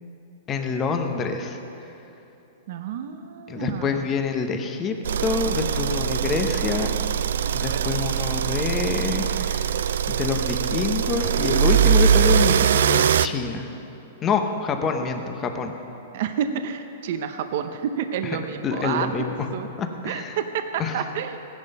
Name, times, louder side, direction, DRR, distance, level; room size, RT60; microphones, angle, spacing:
voice 1, 0.5-1.6 3.5-4.9 5.2-6.9 7.5-9.8 10.1-13.7 14.2-15.7 18.6-19.3 19.8-20.4 20.8-21.0, left 5 dB, 20° left, 5 dB, 0.9 m, -26 dB
voice 2, 2.7-4.0 16.1-19.1 19.5-19.7 20.0-21.4, right 8 dB, 55° right, 8 dB, 0.7 m, -29 dB
sound 1, 5.0-13.3, right 8 dB, 80° right, 0.4 m, -22 dB
16.0 x 10.5 x 5.5 m, 3.0 s
hypercardioid pair, 155°, 0 cm